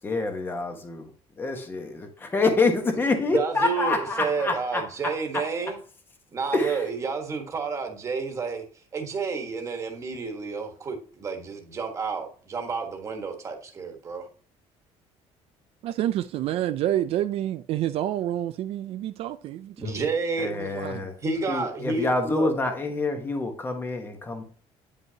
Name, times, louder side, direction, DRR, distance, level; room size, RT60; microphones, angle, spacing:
voice 1, 0.0-5.8 6.5-6.9 20.4-21.2 21.5-24.4, left 3 dB, 15° left, 1.2 m, -27 dB
voice 2, 3.3-5.8 6.3-8.6 8.9-14.3 19.8-20.5 21.2-22.5, right 4 dB, 25° right, 1.5 m, -30 dB
voice 3, 15.8-20.0 20.5-21.0, right 12 dB, 55° right, 0.4 m, -28 dB
9.4 x 5.4 x 2.8 m
cardioid pair, 180°, 12 cm